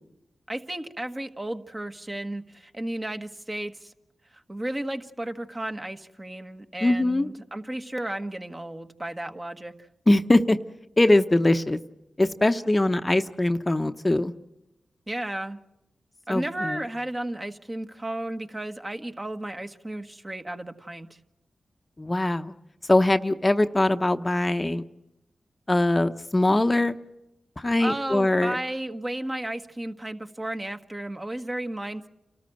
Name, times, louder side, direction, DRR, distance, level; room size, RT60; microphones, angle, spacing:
voice 1, 0.5-3.9 4.3-9.9 15.1-15.6 16.3-21.2 27.8-32.1, right 1 dB, 25° right, 6 dB, 1.4 m, -33 dB
voice 2, 6.8-7.3 10.1-10.6 11.0-11.8 12.2-14.3 16.3-16.8 22.0-22.5 22.9-24.8 25.7-27.0 27.6-28.6, left 1 dB, 25° left, 9 dB, 0.8 m, -22 dB
29.0 x 13.5 x 7.8 m, 0.90 s
cardioid pair, 45°, 0 cm